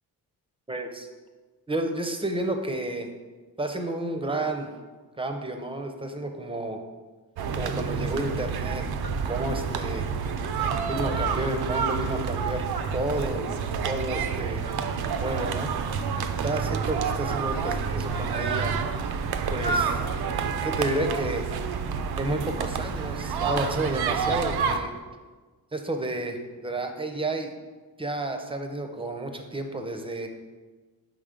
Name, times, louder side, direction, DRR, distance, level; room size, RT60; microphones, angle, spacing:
voice 1, 0.7-1.1 1.7-3.1 3.6-4.7 5.2-6.8 7.6-8.8 9.2-10.1 10.9-12.6 12.9-13.5 13.8-14.7 15.0-15.7 16.4-18.8 19.5-20.0 20.6-21.4 22.2-24.9 25.7-27.5 28.0-30.3, right 2 dB, 15° right, 5 dB, 0.6 m, -31 dB
sound 1, 7.4-24.8, right 6 dB, 75° right, 0.5 m, -28 dB
5.0 x 3.8 x 5.0 m, 1.3 s
cardioid pair, 85°, 38 cm